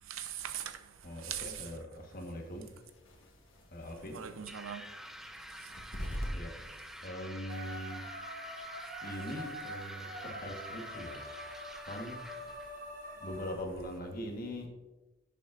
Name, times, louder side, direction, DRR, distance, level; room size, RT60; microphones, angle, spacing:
voice 1, 0.0-1.7 4.0-4.8 5.5-6.4 7.0-7.1, right 9 dB, 75° right, 0.7 m, -42 dB
voice 2, 1.0-2.7 3.7-4.2 6.3-6.5 7.0-8.0 9.0-11.2 11.9-12.2 13.2-14.7, equal, 40° left, 1.2 m, -41 dB
sound 1, 1.9-13.5, equal, 65° left, 1.5 m, -48 dB
sound 2, 4.5-12.7, equal, ahead, 0.3 m, -49 dB
sound 3, 7.5-13.5, equal, 40° right, 1.2 m, -45 dB
11.0 x 7.0 x 2.5 m
head